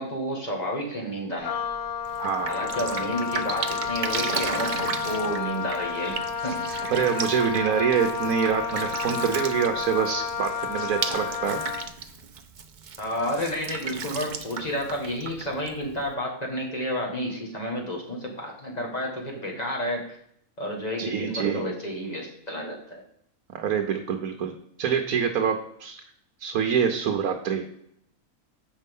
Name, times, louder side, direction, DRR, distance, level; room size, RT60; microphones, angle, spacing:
voice 1, 0.0-1.6 2.5-6.9 13.0-20.2 20.6-23.0, equal, 25° left, -1 dB, 1.9 m, -31 dB
Wind instrument woodwind instrument, 1.4-12.0, left 6 dB, 70° left, 0.5 m, -31 dB
Drip, 2.0-16.1, right 6 dB, 50° right, 0.5 m, -35 dB
voice 2, 2.2-2.6 6.9-11.6 21.0-21.6 23.5-24.5 24.8-26.0 26.4-27.7, right 7 dB, 75° right, 4 dB, 1.2 m, -25 dB
7.6 x 5.5 x 5.3 m, 0.71 s
omnidirectional pair, 1.5 m